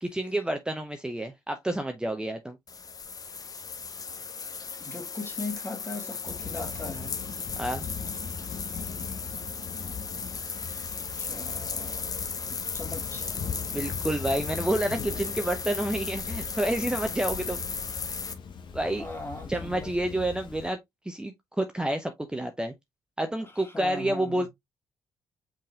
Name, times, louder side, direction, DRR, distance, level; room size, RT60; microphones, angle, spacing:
voice 1, 0.0-2.6 7.6-7.9 13.7-17.6 18.7-19.1 19.5-20.8 21.1-22.7 23.2-24.5, right 1 dB, 10° right, 0.7 m, -29 dB
sound 1, 2.7-18.3, left 5 dB, 40° left, 0.8 m, -36 dB
voice 2, 4.8-7.1 11.0-12.1 12.5-13.3 19.0-20.2 23.4-24.5, left 2 dB, 25° left, 1.9 m, -39 dB
Thunder / Rain, 6.3-20.7, left 6 dB, 55° left, 1.1 m, -40 dB
5.3 x 4.1 x 2.4 m
hypercardioid pair, 50°, 9 cm